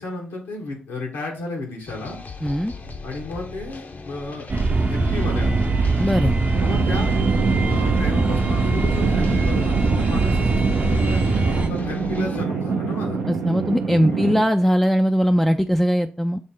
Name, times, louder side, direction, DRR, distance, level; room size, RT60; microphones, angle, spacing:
voice 1, 0.0-2.2 3.0-4.5 4.9-5.6 6.6-7.1 7.6-13.2 14.1-14.2, left 2 dB, 90° left, 0 dB, 1.3 m, -33 dB
sound 1, 1.9-12.5, left 3 dB, 45° left, 0.7 m, -37 dB
voice 2, 2.4-2.7 6.0-6.3 13.3-16.4, equal, 5° left, 6 dB, 0.4 m, -20 dB
sound 2, 4.5-11.7, right 3 dB, 45° right, 0.7 m, -21 dB
sound 3, 6.5-14.4, right 5 dB, 80° right, 0.7 m, -26 dB
6.3 x 2.1 x 3.7 m, 0.38 s
supercardioid pair, 45°, 4 cm